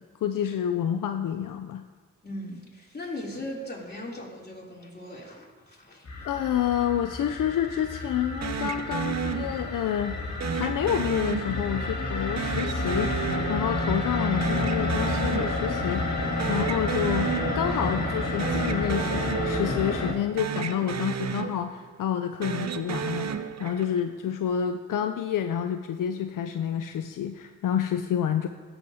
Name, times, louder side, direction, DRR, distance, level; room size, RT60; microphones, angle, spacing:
voice 1, 0.0-1.8 6.2-10.2 10.5-28.5, left 9 dB, 75° left, 7 dB, 0.5 m, -29 dB
voice 2, 2.2-6.3, left 1 dB, 30° left, -4 dB, 3.0 m, -39 dB
sound 1, 6.0-20.1, left 2 dB, 55° left, 1.7 m, -30 dB
sound 2, 8.4-9.9 10.4-11.9 12.4-14.1 14.4-15.9 16.2-17.9 18.3-20.1 20.4-21.9 22.3-24.1, right 7 dB, 55° right, 0.6 m, -33 dB
14.5 x 7.2 x 2.7 m, 1.5 s
cardioid pair, 45°, 33 cm